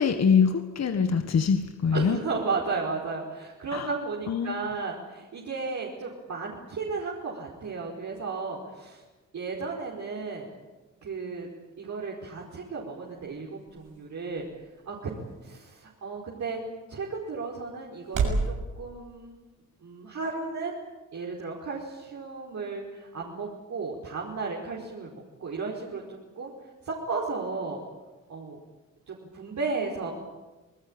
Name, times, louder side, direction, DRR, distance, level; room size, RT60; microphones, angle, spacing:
voice 1, 0.0-2.2 3.7-3.9 4.3-4.6, left 6 dB, 55° left, 7 dB, 1.7 m, -24 dB
voice 2, 1.9-9.0 9.3-10.5 11.0-11.5 11.8-14.5 14.8-15.1 15.4-16.6 16.9-19.3 19.8-20.8 21.1-26.5 26.8-27.8 28.3-28.6 29.1-30.1, right 4 dB, 60° right, -3 dB, 5.0 m, -34 dB
sound 1, 12.2-18.5, right 4 dB, 85° right, 7.3 m, -36 dB
27.0 x 20.0 x 8.9 m, 1.2 s
cardioid pair, 90°, 31 cm